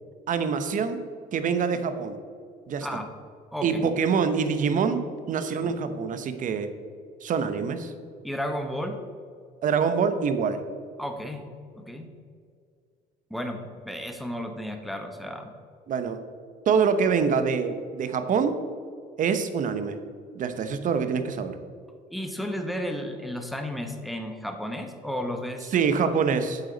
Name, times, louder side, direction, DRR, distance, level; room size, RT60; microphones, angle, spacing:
voice 1, 0.3-1.0 1.3-2.2 2.7-2.9 3.6-6.7 7.2-7.9 9.6-10.6 15.9-16.2 16.7-18.6 19.2-20.0 20.3-21.6 25.7-26.6, right 6 dB, 50° right, 9 dB, 0.9 m, -25 dB
voice 2, 3.5-3.8 5.6-5.7 8.2-9.0 11.0-11.5 11.8-12.1 13.3-15.5 22.1-25.7 26.0-26.1, equal, ahead, 5 dB, 1.0 m, -33 dB
8.3 x 8.1 x 4.0 m, 2.2 s
cardioid pair, 110°, 17 cm